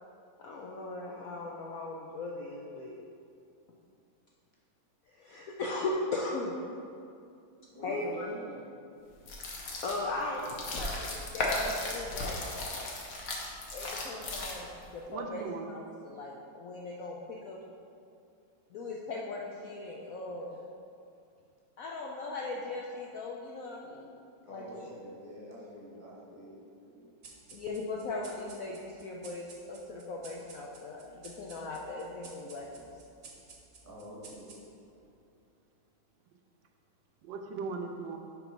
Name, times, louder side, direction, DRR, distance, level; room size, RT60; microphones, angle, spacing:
voice 1, 0.4-2.9 5.1-6.5 7.8-8.3 9.8-12.4 13.7-15.4 15.7-17.6 18.7-20.6 21.8-24.2 24.5-24.9 27.5-32.9, left 2 dB, 75° left, -2 dB, 0.7 m, -38 dB
voice 2, 7.7-8.6 24.4-26.5 26.8-27.1 33.8-34.5, equal, 10° left, -7 dB, 1.2 m, -45 dB
sound 1, 9.2-14.9, left 2 dB, 55° left, 1.2 m, -36 dB
voice 3, 12.6-13.1 15.1-15.7 33.3-33.4 37.2-38.2, right 4 dB, 80° right, 3 dB, 1.2 m, -39 dB
sound 2, 27.2-35.0, right 4 dB, 55° right, 1.1 m, -54 dB
5.9 x 3.9 x 5.6 m, 2.5 s
omnidirectional pair, 2.1 m